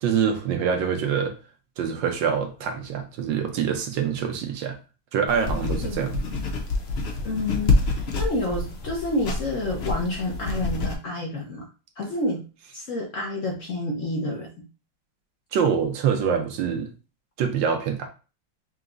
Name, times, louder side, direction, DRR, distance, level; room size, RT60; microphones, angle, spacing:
voice 1, 0.0-1.4 1.8-4.8 5.1-6.2 15.5-16.9 17.4-18.1, right 7 dB, 75° right, 5 dB, 1.4 m, -25 dB
sound 1, 5.3-10.9, left 3 dB, 85° left, 0.5 m, -27 dB
voice 2, 7.2-11.7 12.0-12.4 12.7-14.5, left 1 dB, 50° left, -1 dB, 1.0 m, -29 dB
5.8 x 2.9 x 2.5 m, 0.33 s
omnidirectional pair, 2.1 m